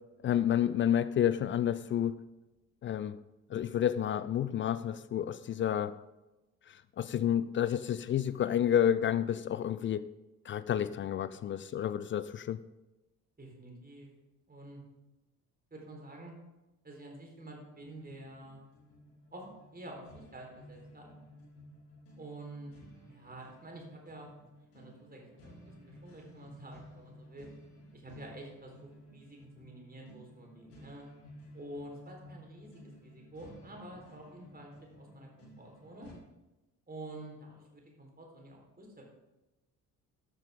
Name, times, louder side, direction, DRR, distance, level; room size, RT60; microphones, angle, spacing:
voice 1, 0.2-2.2 2.8-3.2 3.5-5.9 6.7-10.1 10.5-12.6, left 10 dB, 25° left, 0.4 m, -30 dB
voice 2, 13.4-14.1 14.5-14.8 15.7-16.3 16.8-18.6 19.3-19.4 19.7-21.1 22.2-22.7 23.0-24.3 24.7-25.5 25.8-27.5 27.9-31.0 31.5-36.1 36.9-39.0, right 1 dB, 20° right, 4.1 m, -48 dB
sound 1, 17.7-36.1, equal, 75° left, 3.2 m, -55 dB
13.0 x 9.8 x 3.7 m
figure-of-eight pair, 50°, 46 cm